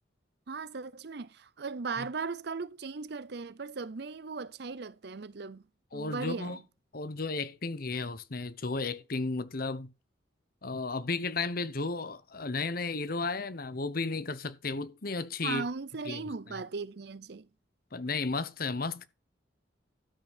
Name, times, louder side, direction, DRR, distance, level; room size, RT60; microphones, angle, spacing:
voice 1, 0.5-5.6 5.9-6.6 15.4-17.5, right 4 dB, 60° right, 0.6 m, -38 dB
voice 2, 5.9-6.6 6.9-9.9 10.6-15.6 16.1-16.2 17.9-19.1, left 3 dB, 50° left, 1.0 m, -34 dB
12.5 x 5.6 x 7.2 m
head